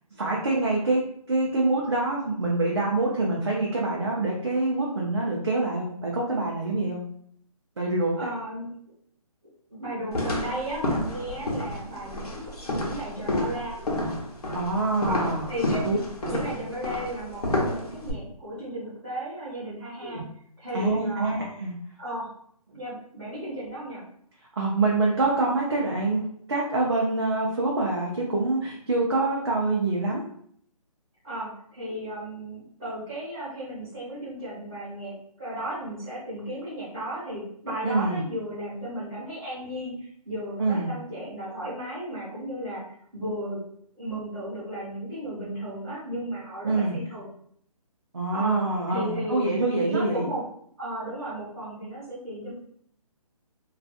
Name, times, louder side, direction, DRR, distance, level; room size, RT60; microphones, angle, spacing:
voice 1, 0.2-7.0 7.8-8.3 14.5-15.5 15.8-16.0 16.2-16.4 20.0-20.3 20.7-21.7 24.6-30.2 37.8-38.2 40.6-40.9 46.6-47.0 48.1-50.2, right 2 dB, 45° right, -3 dB, 0.4 m, -26 dB
voice 2, 8.2-8.7 9.7-13.8 15.0-16.0 16.2-20.2 20.6-21.3 22.0-22.3 22.7-24.0 31.2-43.6 44.0-47.3 48.3-50.4 50.8-52.5, right 1 dB, 10° right, -14 dB, 1.0 m, -35 dB
sound 1, 10.1-18.1, left 1 dB, 80° left, 0.9 m, -30 dB
2.6 x 2.3 x 2.4 m, 0.65 s
hypercardioid pair, 175°, 19 cm